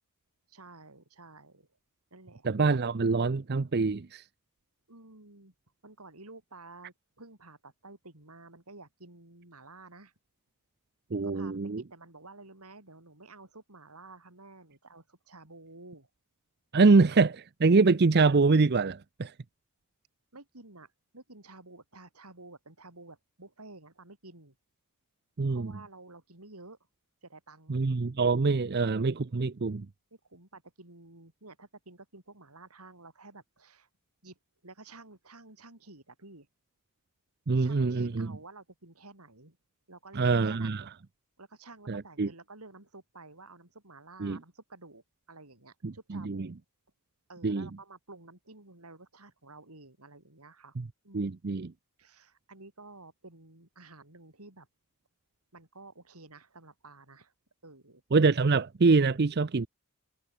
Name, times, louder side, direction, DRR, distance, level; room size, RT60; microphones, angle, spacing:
voice 1, 0.5-1.7 2.1-2.5 2.7-2.8 4.9-5.5 5.8-10.1 11.2-16.1 16.7-16.8 20.3-24.5 25.5-26.8 27.2-27.8 28.6-28.7 30.3-33.9 34.2-36.5 37.6-39.6 39.9-40.9 41.4-46.5 47.3-50.8 51.0-51.4 52.0-54.7 55.5-57.3 57.6-58.0, right 2 dB, 85° right, 6.4 m, -51 dB
voice 2, 2.4-4.2 11.1-11.8 16.7-19.3 25.4-25.7 27.7-29.9 37.5-38.3 40.1-40.8 41.9-42.3 44.2-44.4 45.8-46.5 47.4-47.7 50.8-50.9 51.1-51.7 58.1-59.7, right 4 dB, 45° right, 0.6 m, -25 dB
head